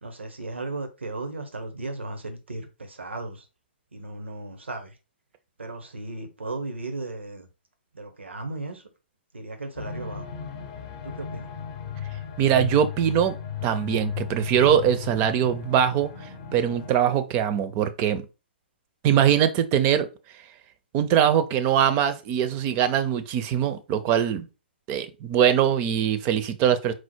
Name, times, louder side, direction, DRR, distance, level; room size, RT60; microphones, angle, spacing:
voice 1, 0.0-3.5 3.9-5.0 5.6-7.5 7.9-8.9 9.3-10.3 11.0-11.5, right 2 dB, 85° right, 1.0 m, -35 dB
sound 1, 9.8-16.9, left 8 dB, 35° left, 0.7 m, -36 dB
voice 2, 12.4-13.4 13.6-16.1 16.5-18.2 19.0-20.1 20.9-24.5 24.9-26.9, right 9 dB, 30° right, 0.6 m, -22 dB
4.5 x 2.1 x 4.4 m
hypercardioid pair, 130°, 6 cm